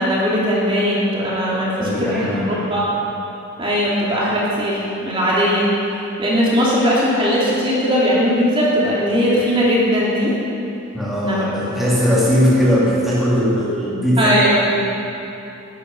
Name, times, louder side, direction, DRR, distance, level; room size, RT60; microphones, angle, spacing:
voice 1, 0.0-2.8 3.6-5.7 6.2-10.3 11.2-11.5 14.2-14.8, equal, 25° right, -6 dB, 2.8 m, -19 dB
voice 2, 1.6-2.6 10.9-14.3, equal, ahead, -8 dB, 2.8 m, -19 dB
20.0 x 11.0 x 5.5 m, 2.9 s
head